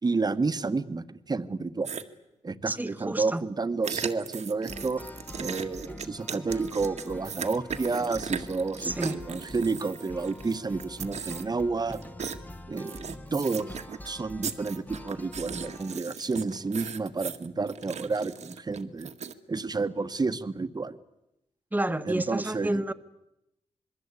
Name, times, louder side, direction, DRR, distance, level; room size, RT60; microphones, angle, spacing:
voice 1, 0.0-1.9 2.4-5.0 5.4-12.0 12.7-13.7 14.0-19.1 19.5-21.0 22.0-22.8, right 4 dB, 35° right, 1.5 m, -30 dB
sound 1, 1.8-2.0 3.8-10.5 10.8-11.6 11.9-12.4 12.7-14.1 14.4-19.3, right 6 dB, 70° right, 1.9 m, -38 dB
voice 2, 2.7-3.4 8.8-9.2 21.7-22.9, right 1 dB, 15° right, 1.5 m, -29 dB
sound 2, 4.7-16.0, left 1 dB, 15° left, 1.5 m, -45 dB
26.5 x 21.5 x 8.5 m
cardioid pair, 75°, 12 cm